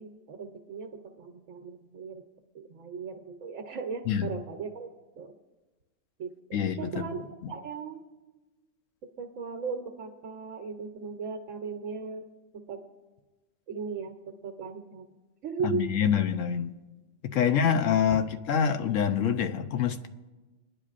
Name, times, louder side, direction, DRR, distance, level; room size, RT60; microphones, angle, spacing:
voice 1, 0.0-2.2 2.5-4.9 5.2-5.3 6.2-8.0 9.0-12.3 12.5-12.8 13.7-14.2 14.4-15.1 15.4-16.0 17.3-17.4, right 5 dB, 80° right, 2 dB, 1.3 m, -37 dB
voice 2, 6.5-7.1 15.6-16.7 17.2-20.1, left 8 dB, 75° left, 8 dB, 1.1 m, -26 dB
28.0 x 10.0 x 2.5 m, 1.2 s
omnidirectional pair, 1.3 m